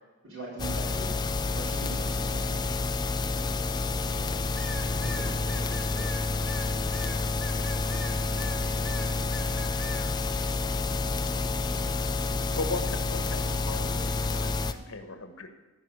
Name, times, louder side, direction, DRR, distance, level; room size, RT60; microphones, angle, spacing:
voice 1, 0.2-1.2 1.5-2.6, right 2 dB, 85° right, -9 dB, 4.7 m, -41 dB
sound 1, 0.6-14.7, left 3 dB, 20° left, 0.4 m, -29 dB
voice 2, 3.2-4.5 5.0-6.2 6.6-7.3, right 1 dB, 25° right, 1 dB, 2.0 m, -45 dB
sound 2, 4.6-8.6 8.8-10.1, left 1 dB, ahead, 1.1 m, -41 dB
voice 3, 12.5-15.5, left 2 dB, 75° left, 7 dB, 1.4 m, -37 dB
15.0 x 5.6 x 7.8 m, 1.2 s
head